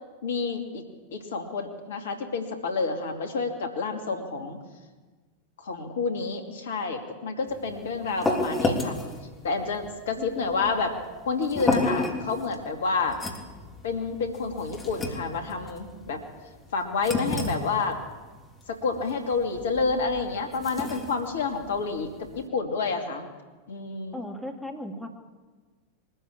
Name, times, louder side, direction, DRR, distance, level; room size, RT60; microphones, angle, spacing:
voice 1, 0.2-0.8 1.1-4.6 5.6-9.0 9.4-11.0 11.2-13.2 13.8-16.2 16.7-18.0 18.7-23.2 23.7-24.2, left 4 dB, 60° left, 5 dB, 2.6 m, -29 dB
sound 1, 7.5-22.5, left 2 dB, 15° left, 3.3 m, -32 dB
voice 2, 10.2-10.8 24.1-25.1, left 1 dB, ahead, 0 dB, 2.9 m, -37 dB
23.0 x 13.5 x 8.7 m, 1.4 s
figure-of-eight pair, 90°, 0 cm